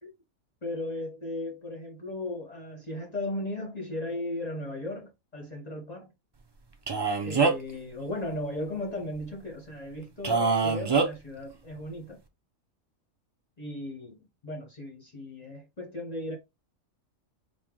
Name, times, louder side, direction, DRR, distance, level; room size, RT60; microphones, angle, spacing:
voice 1, 0.6-6.1 7.2-12.2 13.6-14.2 14.4-16.4, left 1 dB, 35° left, 0.8 m, -36 dB
Male speech man speaking, 6.9-7.8 10.2-11.1, right 4 dB, 45° right, 0.3 m, -24 dB
4.6 x 2.3 x 3.6 m
omnidirectional pair, 1.4 m